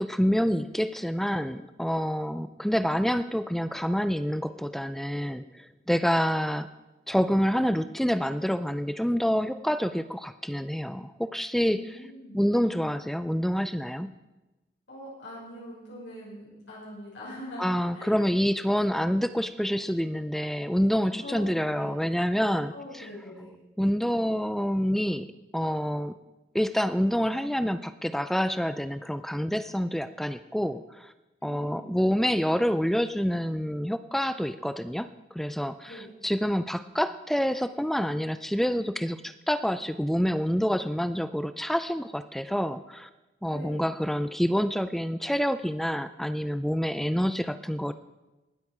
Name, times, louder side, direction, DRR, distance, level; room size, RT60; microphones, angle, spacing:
voice 1, 0.0-6.7 7.1-12.0 12.3-14.1 17.6-23.1 23.8-25.3 25.5-26.2 26.5-31.1 31.4-43.1 43.4-47.9, equal, ahead, 12 dB, 0.3 m, -27 dB
voice 2, 11.6-12.5 14.9-17.7 17.9-18.2 21.2-21.5 21.7-22.0 22.7-23.6 31.4-32.0 35.9-36.1 43.5-43.9, left 1 dB, 80° left, -7 dB, 6.0 m, -43 dB
19.0 x 8.2 x 4.8 m, 1.1 s
head